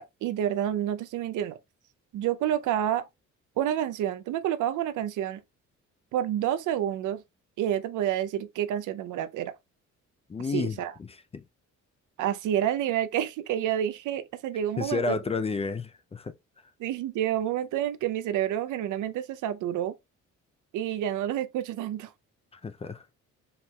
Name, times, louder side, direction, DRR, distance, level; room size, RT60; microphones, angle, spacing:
voice 1, 0.0-1.6 2.1-3.1 3.6-5.4 6.1-7.2 7.6-9.5 10.5-10.9 12.2-15.2 16.8-19.9 20.7-22.1, right 11 dB, 80° right, 0.6 m, -29 dB
voice 2, 10.3-10.8 11.3-11.4 14.8-16.3 22.5-23.0, left 4 dB, 20° left, 0.4 m, -31 dB
4.6 x 3.6 x 2.2 m
cardioid pair, 90°, 30 cm